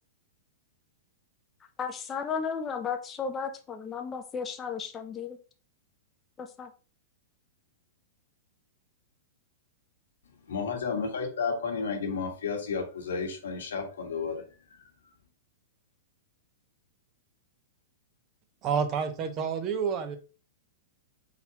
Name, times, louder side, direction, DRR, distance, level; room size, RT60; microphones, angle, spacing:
voice 1, 1.8-5.4 6.4-6.7, left 6 dB, 20° left, 0.4 m, -34 dB
voice 2, 10.5-14.4, left 5 dB, 90° left, 1.3 m, -32 dB
voice 3, 18.6-20.2, right 6 dB, 30° right, 0.7 m, -29 dB
4.3 x 3.9 x 2.8 m
hypercardioid pair, 145°, 0 cm